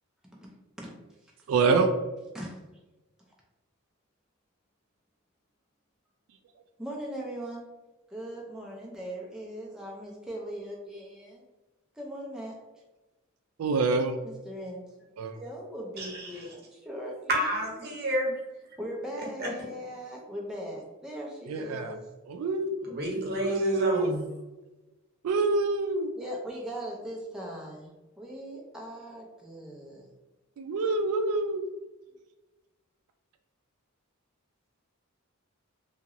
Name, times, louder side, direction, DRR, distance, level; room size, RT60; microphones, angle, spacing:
voice 1, 1.5-1.9 13.6-14.2 15.2-15.4 21.4-21.9 22.3-22.7 23.4-24.1 25.2-26.1 30.6-31.6, right 3 dB, 80° right, 6 dB, 0.3 m, -26 dB
voice 2, 6.8-7.6 8.1-11.4 12.0-12.6 14.2-14.8 15.3-17.6 18.8-22.0 26.2-27.9 28.2-30.1, equal, 5° right, -3 dB, 0.4 m, -39 dB
voice 3, 16.0-16.5 17.3-18.4 19.4-19.5 22.9-24.2, right 1 dB, 45° right, -1 dB, 0.8 m, -29 dB
2.9 x 2.8 x 2.5 m, 1.1 s
head